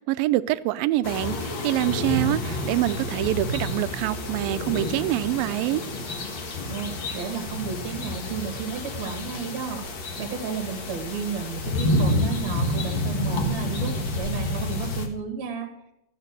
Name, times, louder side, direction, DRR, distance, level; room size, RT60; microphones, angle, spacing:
voice 1, 0.1-5.8, right 16 dB, 90° right, 2.4 m, -25 dB
sound 1, 1.0-15.1, left 1 dB, 45° left, 1.8 m, -29 dB
voice 2, 6.7-9.8 10.2-15.7, right 6 dB, 55° right, 3.0 m, -33 dB
14.5 x 8.9 x 6.7 m
omnidirectional pair, 4.0 m